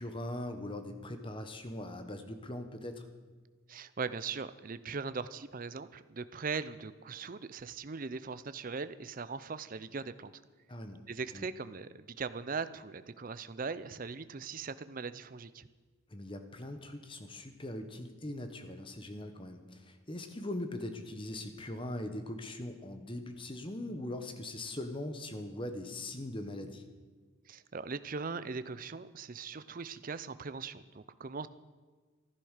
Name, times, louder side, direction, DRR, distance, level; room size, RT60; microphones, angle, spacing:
voice 1, 0.0-3.0 10.7-11.0 11.3-11.5 16.1-26.8, left 1 dB, 25° left, 7 dB, 1.2 m, -41 dB
voice 2, 3.7-10.3 11.1-15.7 27.5-31.5, right 4 dB, 40° right, 13 dB, 0.5 m, -40 dB
14.0 x 11.5 x 6.5 m, 1.4 s
head